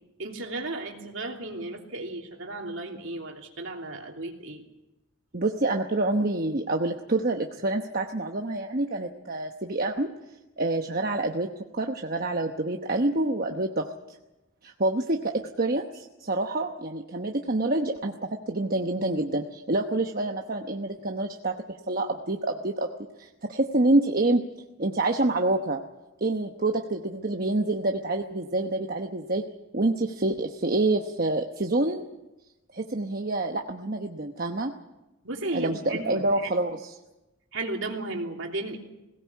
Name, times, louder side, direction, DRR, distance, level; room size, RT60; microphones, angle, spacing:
voice 1, 0.2-4.6 35.2-36.5 37.5-38.8, right 2 dB, 65° right, 2 dB, 3.0 m, -34 dB
voice 2, 5.3-10.1 10.6-11.5 11.7-13.9 14.6-21.5 21.9-22.9 23.2-24.4 24.8-25.8 26.2-29.4 29.7-32.0 32.7-34.7 35.5-36.9, right 2 dB, 45° right, 3 dB, 1.0 m, -27 dB
20.5 x 17.5 x 8.4 m, 1.0 s
head